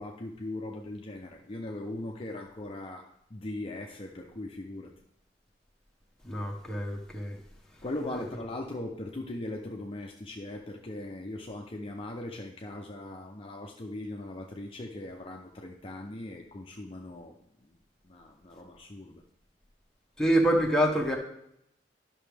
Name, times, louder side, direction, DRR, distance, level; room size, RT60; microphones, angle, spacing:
voice 1, 0.0-4.9 7.8-17.4 17.7-17.8 18.0-19.2, left 1 dB, 30° left, 1 dB, 0.6 m, -39 dB
voice 2, 6.2-7.4 8.1-8.2 20.2-21.2, right 1 dB, 5° left, -1 dB, 1.1 m, -26 dB
11.0 x 6.0 x 3.4 m, 0.76 s
head